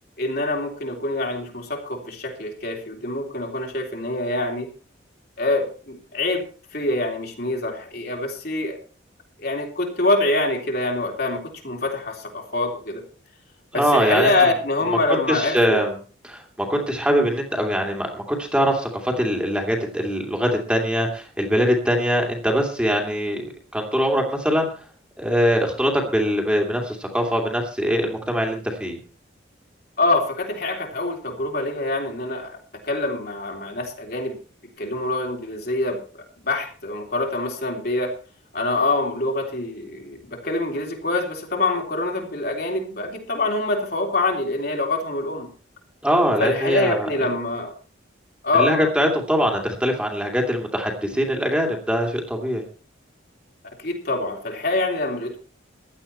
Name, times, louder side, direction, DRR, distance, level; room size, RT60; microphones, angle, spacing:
voice 1, 0.2-4.7 5.4-6.4 6.7-8.8 9.4-13.0 13.7-15.9 30.0-34.4 34.8-38.1 38.5-45.5 46.4-47.7 48.4-48.9 53.8-55.4, left 2 dB, 55° left, 1 dB, 3.4 m, -25 dB
voice 2, 13.7-14.3 15.1-15.9 16.2-24.7 25.2-29.0 46.0-47.1 48.6-52.6, equal, 5° right, 1 dB, 2.5 m, -22 dB
16.0 x 11.5 x 4.3 m, 0.39 s
head